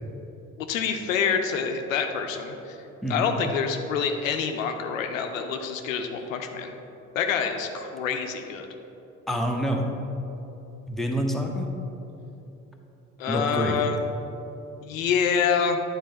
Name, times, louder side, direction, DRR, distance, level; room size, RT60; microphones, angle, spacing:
voice 1, 0.6-2.8 3.1-6.7 7.1-8.7 13.2-14.0 14.8-15.8, left 6 dB, 80° left, 5 dB, 0.5 m, -27 dB
voice 2, 9.3-9.8 10.9-11.7 13.3-13.8, equal, ahead, 1 dB, 0.8 m, -27 dB
9.3 x 3.9 x 3.8 m, 3.0 s
figure-of-eight pair, 50°, 39 cm